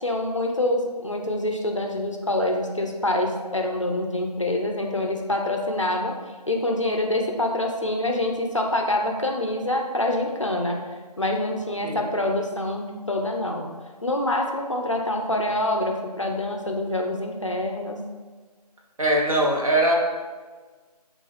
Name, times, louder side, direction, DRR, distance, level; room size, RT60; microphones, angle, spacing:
voice 1, 0.0-6.1 6.5-10.8 11.2-13.7 14.0-18.0, left 1 dB, 50° left, 2 dB, 0.4 m, -26 dB
voice 2, 19.0-19.9, right 1 dB, 55° right, -2 dB, 0.8 m, -21 dB
4.5 x 2.3 x 3.2 m, 1.4 s
figure-of-eight pair, 170°, 21 cm